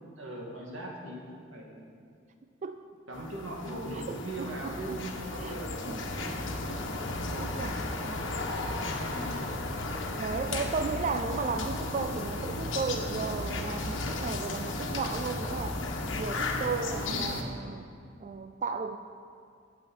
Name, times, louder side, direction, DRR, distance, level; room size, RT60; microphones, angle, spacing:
voice 1, 0.2-2.0 3.1-6.4 9.1-9.5 17.0-17.2, right 1 dB, 85° right, -2 dB, 2.4 m, -40 dB
sound 1, 3.1-17.4, left 2 dB, 80° left, 1.3 m, -34 dB
voice 2, 3.9-5.0 5.4-5.6 5.9-6.4 6.7-6.8 7.3-7.8 8.3-8.5 9.2-9.4 10.2-15.8 16.1-17.9 18.2-19.0, right 4 dB, 40° right, 8 dB, 0.4 m, -35 dB
9.3 x 7.6 x 9.1 m, 2.3 s
head